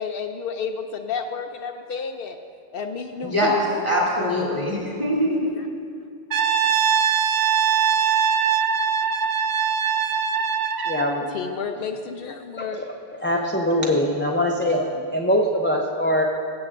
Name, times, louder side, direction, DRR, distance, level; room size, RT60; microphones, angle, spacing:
voice 1, 0.0-2.4 2.7-3.9 5.6-5.7 11.3-12.8, left 5 dB, 70° left, 6 dB, 0.7 m, -31 dB
voice 2, 3.2-3.6 3.8-5.5, equal, 40° right, -6 dB, 3.0 m, -23 dB
Brass instrument, 6.3-11.1, right 7 dB, 60° right, 0.6 m, -21 dB
voice 3, 10.9-11.3 12.6-12.9 13.2-16.3, equal, 15° left, -1 dB, 0.5 m, -22 dB
19.5 x 7.7 x 2.5 m, 2.2 s
omnidirectional pair, 1.0 m